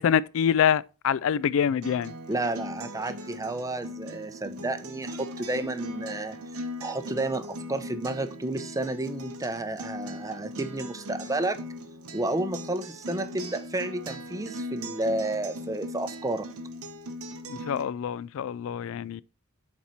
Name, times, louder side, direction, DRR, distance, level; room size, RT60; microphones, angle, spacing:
voice 1, 0.0-2.1 17.5-19.2, left 8 dB, 65° left, 0.3 m, -25 dB
Acoustic guitar, 1.8-17.8, equal, 85° right, 1.0 m, -39 dB
voice 2, 2.3-6.4 6.8-11.6 12.1-16.5, right 2 dB, 15° right, 0.6 m, -31 dB
7.4 x 4.3 x 4.1 m
head